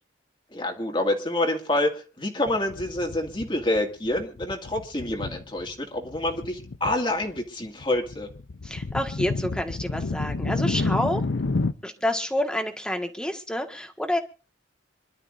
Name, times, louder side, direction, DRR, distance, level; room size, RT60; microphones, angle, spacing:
voice 1, 0.5-8.3, left 1 dB, 25° left, 1 dB, 2.2 m, -27 dB
sound 1, 2.5-3.8 4.0-5.7 6.0-6.9 7.2-11.7, left 3 dB, 80° left, 0.7 m, -30 dB
voice 2, 8.6-11.2 11.8-14.2, left 1 dB, 5° left, 4 dB, 1.7 m, -28 dB
27.0 x 12.0 x 2.6 m, 0.35 s
head